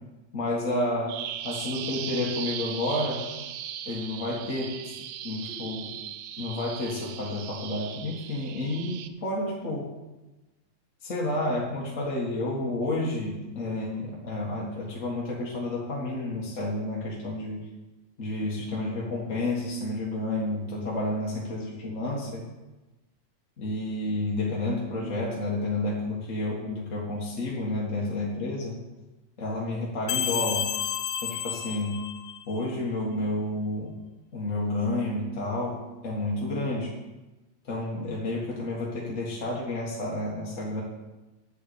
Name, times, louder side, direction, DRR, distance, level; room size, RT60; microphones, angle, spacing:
voice 1, 0.3-1.1 1.4-3.3 3.8-4.8 5.2-6.0 6.4-9.9 11.0-17.7 18.2-22.4 23.6-28.8 29.4-30.7 31.2-32.1 32.5-34.0 34.3-37.0 37.7-40.8, left 2 dB, 35° left, -4 dB, 1.3 m, -30 dB
Bird vocalization bird call bird song, 1.1-9.1, right 10 dB, 80° right, 1.6 m, -38 dB
sound 1, 30.1-32.6, left 11 dB, 80° left, 2.1 m, -31 dB
9.5 x 7.9 x 8.4 m, 1.1 s
omnidirectional pair, 3.9 m